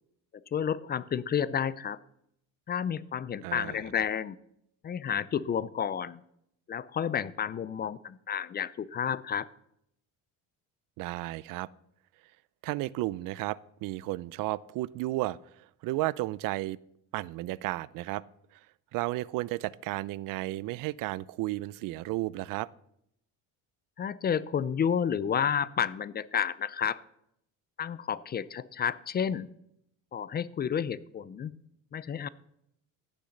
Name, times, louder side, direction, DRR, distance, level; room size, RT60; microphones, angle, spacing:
voice 1, 0.5-2.0 2.7-4.4 4.8-6.2 6.7-9.5 24.0-27.0 27.8-29.5 30.1-31.5 31.9-32.3, left 8 dB, 30° left, 19 dB, 0.5 m, -31 dB
voice 2, 3.4-3.8 11.0-11.7 12.6-16.8 17.1-18.2 18.9-22.7, right 18 dB, 70° right, 22 dB, 0.5 m, -33 dB
15.5 x 7.0 x 6.5 m, 0.74 s
cardioid pair, 130°, 34 cm